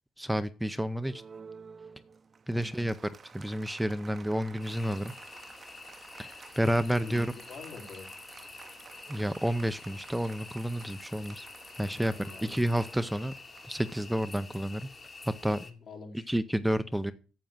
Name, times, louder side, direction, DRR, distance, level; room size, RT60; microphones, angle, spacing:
voice 1, 0.2-1.2 2.5-2.9 3.3-5.1 6.2-7.3 9.1-11.5 11.8-12.1 12.4-13.3 13.7-14.9 15.3-15.6 16.3-17.1, equal, 5° right, 11 dB, 0.7 m, -30 dB
Applause, 0.9-15.0, right 5 dB, 40° right, 0.9 m, -52 dB
voice 2, 2.5-2.8 7.0-8.1 11.9-12.7 15.6-16.3, left 3 dB, 60° left, 2 dB, 4.2 m, -46 dB
sound 1, 4.6-15.7, left 3 dB, 35° left, 1.9 m, -48 dB
9.1 x 7.5 x 7.4 m, 0.37 s
cardioid pair, 90°, 0 cm